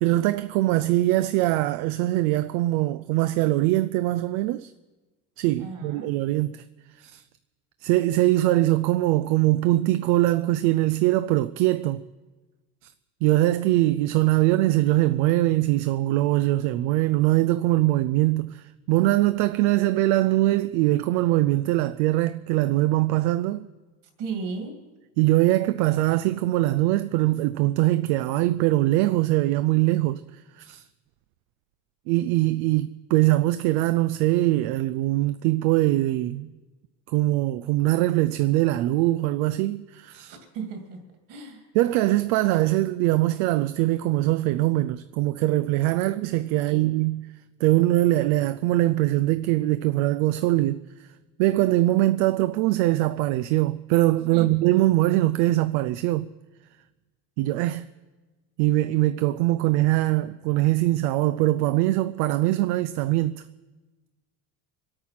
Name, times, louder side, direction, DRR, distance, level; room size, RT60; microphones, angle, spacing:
voice 1, 0.0-4.7 5.4-6.6 7.0-7.2 7.8-12.0 12.8-12.9 13.2-23.7 25.2-30.8 32.1-36.5 37.1-40.4 41.7-47.2 47.6-51.1 51.4-56.3 57.4-57.9 58.6-63.4, right 17 dB, 70° right, 0.5 m, -22 dB
voice 2, 5.6-6.1 24.2-24.8 40.3-41.0 41.3-41.6 46.5-46.9 54.3-54.5, right 5 dB, 55° right, 2.5 m, -35 dB
24.0 x 8.9 x 5.8 m
cardioid pair, 160°, 38 cm